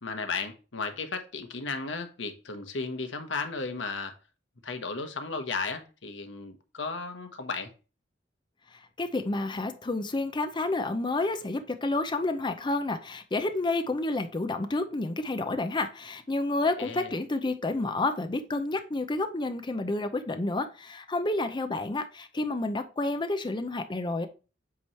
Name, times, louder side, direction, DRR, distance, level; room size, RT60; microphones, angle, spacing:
voice 1, 0.0-4.1 4.6-7.7 16.8-17.1, left 4 dB, 75° left, 1.2 m, -34 dB
voice 2, 8.7-24.3, left 2 dB, 25° left, 0.6 m, -30 dB
8.4 x 3.2 x 5.6 m
head